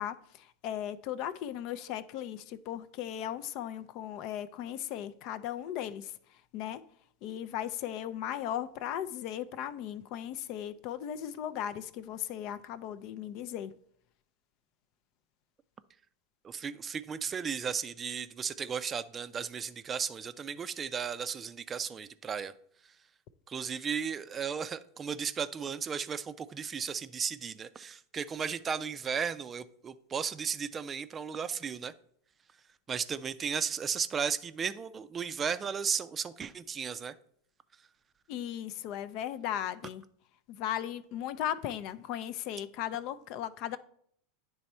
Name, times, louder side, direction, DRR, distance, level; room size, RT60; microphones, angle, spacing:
voice 1, 0.0-6.1 6.5-6.8 7.2-13.7 38.3-40.0 40.5-43.8, left 11 dB, 55° left, 0.4 m, -37 dB
voice 2, 16.4-22.5 23.5-31.9 32.9-37.1, right 6 dB, 25° right, 0.4 m, -35 dB
9.6 x 3.4 x 4.2 m
hypercardioid pair, 110°, 0 cm